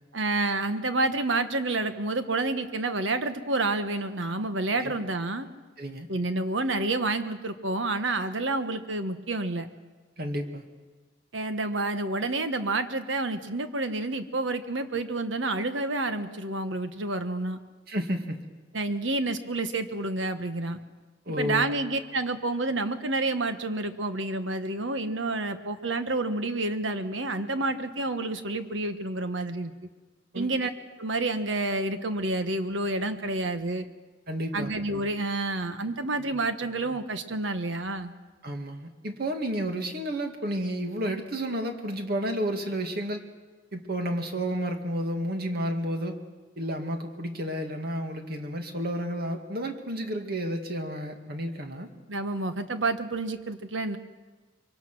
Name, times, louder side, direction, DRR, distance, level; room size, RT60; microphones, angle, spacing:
voice 1, 0.1-5.5 6.1-9.7 11.3-17.6 18.7-20.8 21.4-29.7 30.3-30.7 31.0-33.8 34.5-38.1 52.1-54.0, right 2 dB, 75° right, 9 dB, 1.4 m, -29 dB
voice 2, 5.8-6.1 10.2-10.6 17.9-18.4 21.3-21.7 30.3-30.7 34.3-34.7 38.4-43.2 43.7-46.2 46.6-51.9, equal, 55° right, 5 dB, 2.2 m, -31 dB
24.5 x 23.5 x 6.2 m, 1.3 s
head